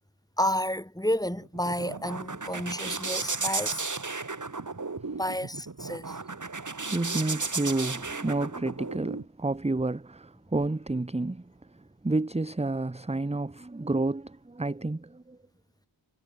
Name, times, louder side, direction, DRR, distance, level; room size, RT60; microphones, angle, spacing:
voice 1, 0.4-3.9 5.1-6.2, left 1 dB, 10° left, 2.0 m, -31 dB
sound 1, 1.3-9.2, right 3 dB, 40° right, 1.5 m, -34 dB
voice 2, 6.9-11.4 12.0-15.4, right 2 dB, 15° right, 0.7 m, -30 dB
wide cardioid pair, 50°, 48 cm